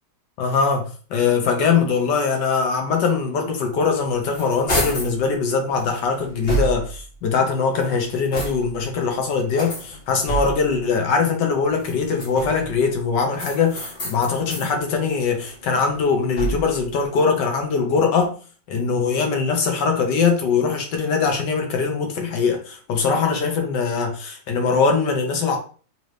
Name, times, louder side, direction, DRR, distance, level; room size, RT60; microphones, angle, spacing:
voice 1, 0.4-18.3 18.7-25.6, left 5 dB, 70° left, 1.4 m, -22 dB
sound 1, 3.9-5.2 5.8-7.0 7.6-8.9 9.5-10.8 11.7-12.7 13.3-14.7 15.2-16.8, right 2 dB, 40° left, 1.8 m, -30 dB
3.8 x 2.9 x 3.1 m
omnidirectional pair, 2.1 m